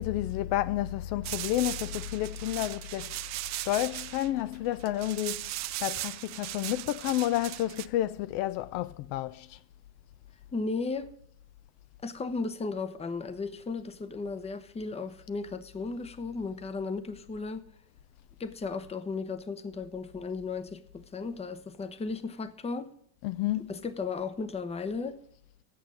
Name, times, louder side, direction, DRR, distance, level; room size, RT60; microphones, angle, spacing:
voice 1, 0.0-5.5 5.8-9.6 23.2-23.7, left 14 dB, 60° left, 0.6 m, -31 dB
sound 1, 1.2-7.9, right 16 dB, 40° right, 0.4 m, -38 dB
voice 2, 10.5-11.1 12.0-17.7 18.4-22.9 23.7-25.2, left 4 dB, 15° left, 0.7 m, -35 dB
8.6 x 6.9 x 7.5 m
supercardioid pair, 120°, 46 cm